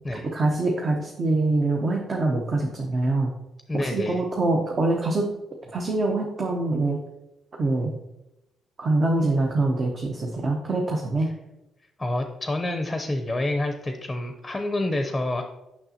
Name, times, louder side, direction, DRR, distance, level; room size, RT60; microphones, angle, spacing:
voice 1, 0.2-3.3 3.7-5.3 5.7-7.0 7.6-7.9 8.8-11.3, right 2 dB, 40° right, 1 dB, 0.8 m, -24 dB
voice 2, 3.7-4.2 12.0-15.4, left 1 dB, 15° left, 6 dB, 0.6 m, -28 dB
6.5 x 5.9 x 2.8 m, 0.92 s
cardioid pair, 90°, 0 cm